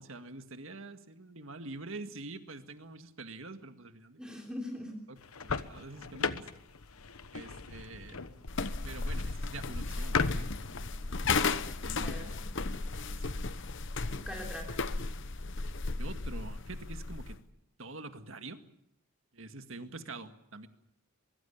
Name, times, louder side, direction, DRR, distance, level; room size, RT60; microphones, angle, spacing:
voice 1, 0.0-4.3 5.1-6.5 7.3-8.3 8.8-12.4 13.1-13.7 16.0-17.4 17.8-18.6 19.3-20.7, right 3 dB, 65° right, 8 dB, 1.9 m, -46 dB
voice 2, 4.2-5.0 12.0-12.4 14.2-14.7, left 1 dB, 5° right, 1 dB, 3.3 m, -42 dB
sound 1, 5.2-10.9, left 4 dB, 80° left, 1.2 m, -37 dB
sound 2, 8.5-17.4, left 3 dB, 55° left, 1.0 m, -35 dB
23.5 x 23.5 x 7.2 m, 0.76 s
head